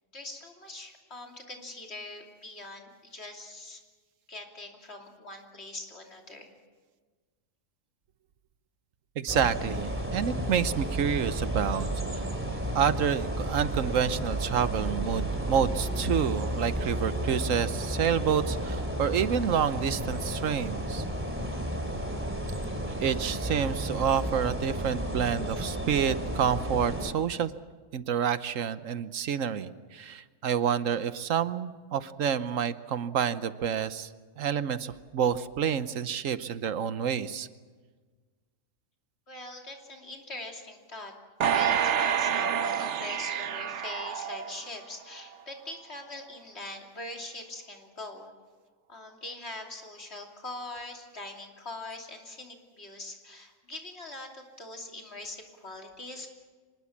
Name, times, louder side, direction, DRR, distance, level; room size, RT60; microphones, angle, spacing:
voice 1, 0.1-3.8 4.3-6.5 39.3-41.1 41.5-48.3 48.9-56.3, left 2 dB, 55° left, 2 dB, 3.3 m, -42 dB
voice 2, 9.2-11.9 12.7-21.0 23.0-27.5 27.9-34.1 34.4-37.5, right 8 dB, 80° right, 13 dB, 1.2 m, -28 dB
sound 1, 9.3-27.1, right 1 dB, 10° right, 2.7 m, -32 dB
sound 2, 13.8-20.5, left 1 dB, 45° right, 4.1 m, -48 dB
sound 3, 41.4-44.9 45.3-45.4, right 8 dB, 65° right, 1.2 m, -28 dB
25.0 x 20.0 x 7.3 m, 1.4 s
omnidirectional pair, 1.4 m